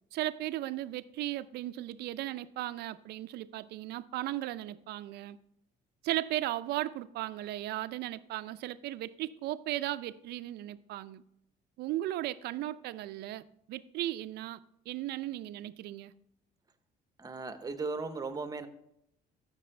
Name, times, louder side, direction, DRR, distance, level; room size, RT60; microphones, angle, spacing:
voice 1, 0.1-5.4 6.0-11.2 11.8-14.6 14.9-16.1, right 15 dB, 75° right, 0.5 m, -36 dB
voice 2, 17.2-18.7, right 4 dB, 20° right, 0.9 m, -37 dB
14.5 x 6.1 x 3.3 m
cardioid pair, 110°, 17 cm